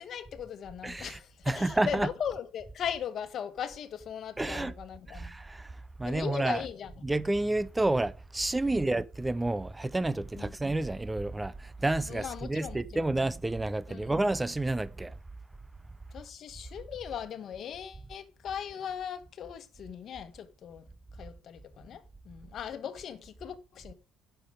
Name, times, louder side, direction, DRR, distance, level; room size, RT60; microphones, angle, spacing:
voice 1, 0.0-5.3 6.0-7.0 8.6-8.9 10.3-10.5 12.1-13.2 13.9-14.2 16.1-20.8 21.2-23.9, left 8 dB, 60° left, 1.4 m, -39 dB
voice 2, 0.8-1.2 1.5-2.1 4.4-4.7 5.1-5.7 6.0-6.6 7.0-15.1, right 2 dB, 15° right, 0.6 m, -30 dB
9.5 x 6.9 x 5.1 m
cardioid pair, 90°, 0 cm